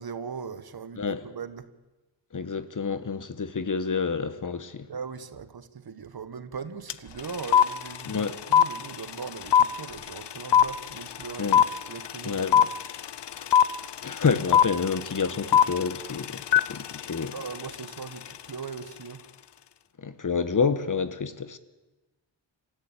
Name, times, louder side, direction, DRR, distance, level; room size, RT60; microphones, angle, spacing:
voice 1, 0.0-1.7 4.9-11.6 11.9-12.5 17.3-19.3, right 6 dB, 50° right, 1.3 m, -39 dB
voice 2, 2.3-4.9 8.0-8.3 11.4-11.6 12.2-12.7 14.0-16.4 16.7-17.3 20.0-21.6, left 5 dB, 40° left, 1.3 m, -28 dB
sound 1, 6.9-7.0 7.2-18.4, left 9 dB, 60° left, 0.8 m, -22 dB
26.5 x 14.0 x 9.0 m
wide cardioid pair, 120°, 46 cm